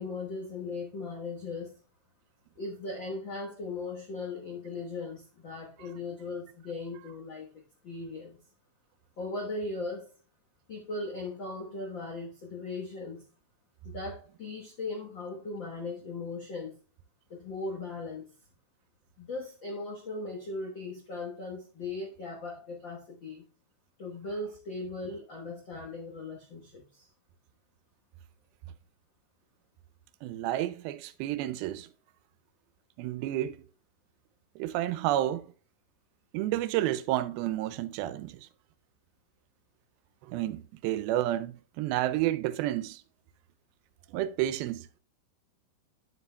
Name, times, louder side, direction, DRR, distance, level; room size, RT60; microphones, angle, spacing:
voice 1, 0.0-1.7 2.6-8.4 9.2-10.1 10.7-13.2 13.8-16.7 17.3-18.3 19.2-23.4 24.0-27.1, left 3 dB, 90° left, 1.0 m, -38 dB
voice 2, 30.2-31.9 33.0-33.6 34.6-35.5 36.3-38.4 40.3-43.0 44.1-45.0, right 13 dB, 85° right, 2.4 m, -30 dB
9.4 x 8.2 x 2.2 m
omnidirectional pair, 4.3 m